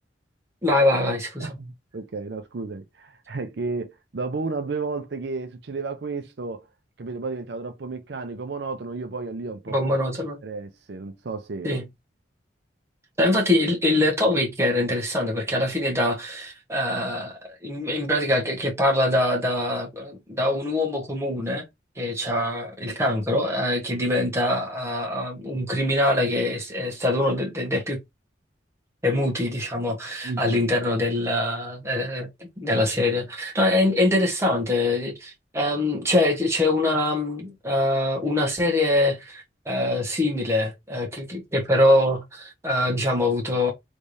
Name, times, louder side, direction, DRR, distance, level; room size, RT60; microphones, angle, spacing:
voice 1, 0.6-1.5 9.7-10.4 11.6-11.9 13.2-21.6 22.0-28.0 29.0-32.3 32.6-43.7, left 1 dB, 15° right, 1.2 m, -24 dB
voice 2, 1.4-6.7 7.0-9.8 10.4-11.8 22.8-23.0 30.2-30.5, right 3 dB, 65° right, 0.5 m, -32 dB
3.3 x 3.2 x 2.6 m
head